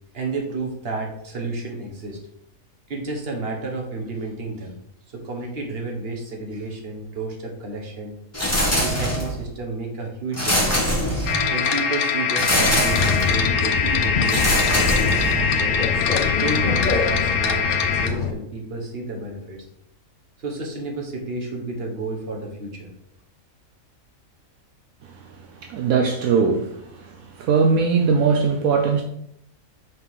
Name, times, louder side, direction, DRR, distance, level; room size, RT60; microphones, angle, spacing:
voice 1, 0.1-2.2 2.9-4.8 5.1-8.2 8.7-10.9 11.5-15.7 16.4-19.6 20.4-22.9, right 3 dB, 45° right, 1.5 m, -31 dB
sound 1, 8.3-9.5 10.3-11.6 12.4-13.4 14.2-15.6, equal, 10° left, 1.1 m, -23 dB
sound 2, 11.3-18.1, left 6 dB, 85° left, 1.2 m, -23 dB
sound 3, 12.9-18.3, left 5 dB, 55° left, 0.5 m, -25 dB
voice 2, 25.6-29.0, right 5 dB, 75° right, 1.0 m, -20 dB
6.1 x 3.7 x 4.7 m
omnidirectional pair, 1.5 m